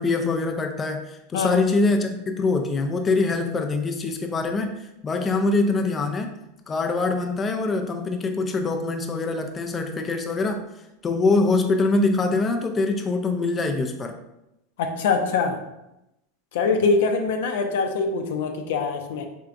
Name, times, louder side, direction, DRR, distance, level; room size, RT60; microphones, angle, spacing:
voice 1, 0.0-6.3 6.7-10.6 11.0-14.1, left 3 dB, 20° left, 4 dB, 0.4 m, -24 dB
voice 2, 14.8-15.6 16.5-19.2, left 4 dB, 75° left, 5 dB, 0.6 m, -23 dB
4.5 x 3.4 x 2.5 m, 0.88 s
supercardioid pair, 120°, 0 cm